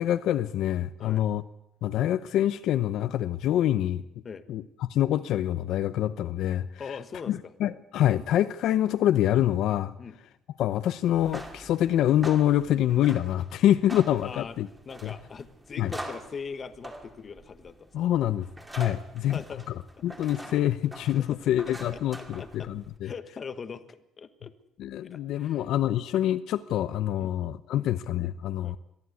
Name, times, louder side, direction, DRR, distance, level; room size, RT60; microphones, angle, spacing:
voice 1, 0.0-1.4 1.8-4.0 4.5-6.8 7.3-9.9 10.6-14.7 15.0-15.1 15.8-15.9 17.9-18.5 18.7-19.4 20.0-23.1 24.8-28.8, left 12 dB, 65° left, 12 dB, 0.8 m, -26 dB
voice 2, 6.8-7.5 10.0-10.2 14.2-14.6 14.8-17.9 19.3-19.6 20.4-20.5 21.1-21.4 21.9-22.7 23.0-24.5 25.0-25.6 27.2-27.3 27.7-27.9 28.6-28.8, left 5 dB, 30° left, 11 dB, 1.3 m, -41 dB
sound 1, 11.1-23.0, right 1 dB, 10° right, 2.5 m, -44 dB
23.0 x 14.0 x 9.6 m, 0.86 s
cardioid pair, 160°, 0 cm